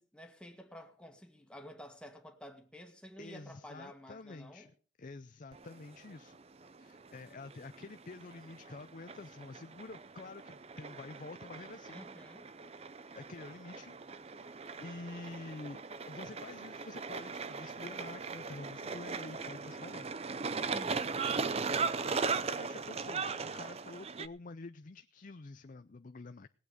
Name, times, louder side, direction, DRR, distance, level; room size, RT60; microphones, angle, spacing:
voice 1, 0.0-4.7 11.9-12.5 20.7-21.6, equal, 5° left, 1.8 m, -51 dB
voice 2, 3.2-4.7 5.0-6.4 6.8-12.0 12.7-13.9 14.3-15.8 16.1-20.1 22.1-26.5, left 3 dB, 45° left, 0.5 m, -48 dB
sound 1, 5.5-24.3, right 5 dB, 35° right, 0.6 m, -39 dB
19.0 x 8.6 x 5.1 m
head